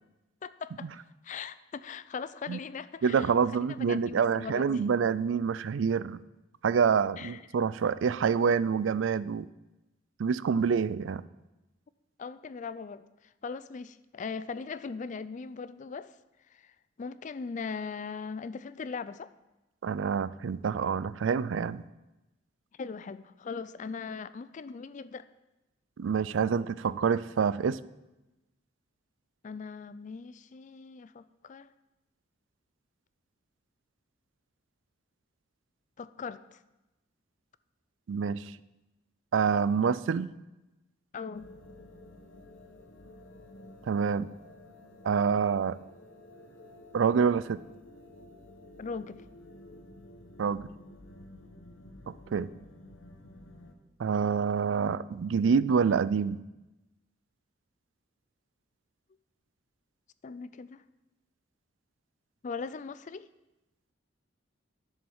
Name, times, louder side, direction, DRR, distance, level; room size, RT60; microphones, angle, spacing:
voice 1, 0.4-4.7 7.2-7.4 12.2-16.1 16.5-16.7 17.0-19.3 22.7-25.2 29.4-31.7 36.0-36.6 41.1-41.5 48.8-49.2 60.2-60.8 62.4-63.3, left 5 dB, 40° left, 15 dB, 0.4 m, -40 dB
voice 2, 3.0-6.2 6.6-9.5 10.2-11.2 19.8-21.8 26.0-27.8 38.1-38.4 39.3-40.3 43.9-44.3 45.0-45.8 46.9-47.6 50.4-50.7 52.3-52.5 54.0-56.4, right 6 dB, 75° right, 17 dB, 0.4 m, -27 dB
sound 1, 41.3-53.7, left 1 dB, 85° left, 1.1 m, -52 dB
11.0 x 7.2 x 5.5 m, 1.0 s
head